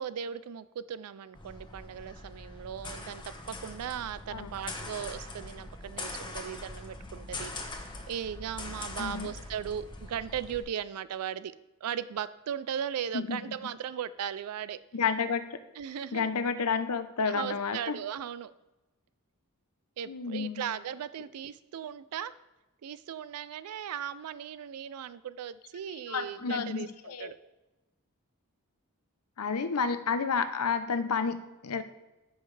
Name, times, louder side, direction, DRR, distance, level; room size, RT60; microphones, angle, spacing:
voice 1, 0.0-11.5 11.8-14.8 15.8-16.3 17.3-18.5 20.0-22.3 22.8-27.4, right 9 dB, 85° right, 16 dB, 0.4 m, -37 dB
sound 1, 1.3-10.6, left 2 dB, 20° left, 1.2 m, -42 dB
voice 2, 9.0-9.3 13.1-13.4 14.9-15.4 16.1-18.0 20.1-20.6 26.1-27.3 29.4-31.8, left 5 dB, 80° left, 10 dB, 0.7 m, -30 dB
14.0 x 5.6 x 3.3 m, 1.0 s
head